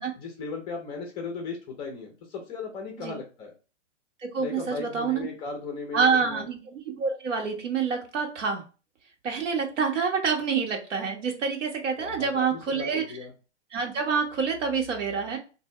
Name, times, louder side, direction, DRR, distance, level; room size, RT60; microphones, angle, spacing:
voice 1, 0.2-3.5 4.4-6.4 12.0-13.3, left 4 dB, 15° left, 2 dB, 0.4 m, -37 dB
voice 2, 4.2-5.3 5.9-6.6 6.9-8.6 9.2-13.0 13.7-15.4, right 5 dB, 90° right, 3 dB, 1.3 m, -27 dB
2.8 x 2.6 x 4.2 m, 0.34 s
hypercardioid pair, 145°, 36 cm